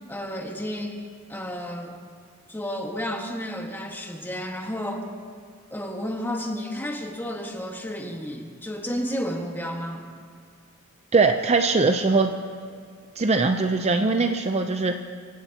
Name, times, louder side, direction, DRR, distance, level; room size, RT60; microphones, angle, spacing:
voice 1, 0.1-1.0 1.3-1.9 2.5-5.1 5.7-10.0, equal, 10° left, 1 dB, 1.6 m, -32 dB
voice 2, 11.1-12.3 13.2-14.9, right 3 dB, 30° right, 6 dB, 0.6 m, -21 dB
25.0 x 16.0 x 2.9 m, 2.2 s
head